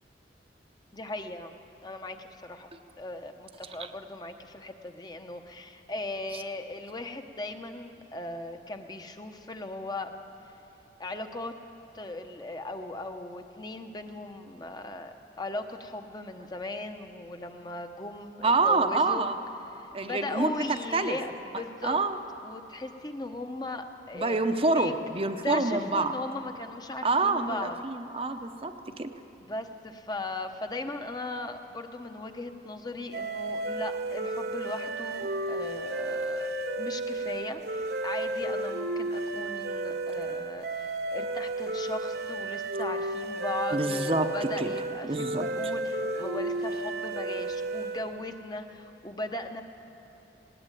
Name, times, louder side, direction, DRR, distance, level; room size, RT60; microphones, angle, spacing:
voice 1, 0.9-1.5 1.8-2.7 3.0-10.1 11.0-11.6 11.9-19.3 19.7-22.0 22.4-24.4 24.7-24.9 25.4-27.8 29.4-36.5 36.8-49.6, left 2 dB, 25° left, 6 dB, 1.0 m, -38 dB
voice 2, 18.4-19.4 19.9-21.2 21.8-22.2 24.1-26.1 27.0-29.1 43.7-44.7 45.0-45.5, right 3 dB, 30° right, 7 dB, 0.8 m, -27 dB
sound 1, 33.1-48.2, right 2 dB, 60° right, 1.2 m, -33 dB
19.0 x 18.0 x 9.2 m, 2.9 s
head